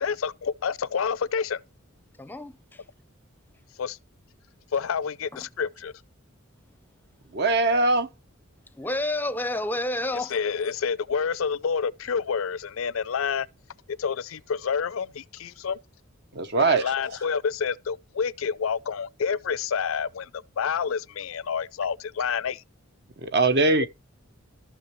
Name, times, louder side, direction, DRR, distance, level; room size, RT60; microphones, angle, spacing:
voice 1, 0.0-1.6 3.8-4.0 4.7-5.9 10.3-13.5 13.9-15.8 16.6-22.6 23.8-23.9, left 6 dB, 75° left, 0.5 m, -28 dB
voice 2, 2.2-2.8 5.3-5.5 8.7-10.4, left 1 dB, 10° left, 0.6 m, -30 dB
voice 3, 7.3-8.1 16.3-16.9 23.2-23.9, right 3 dB, 50° right, 0.9 m, -21 dB
14.0 x 6.1 x 3.1 m
head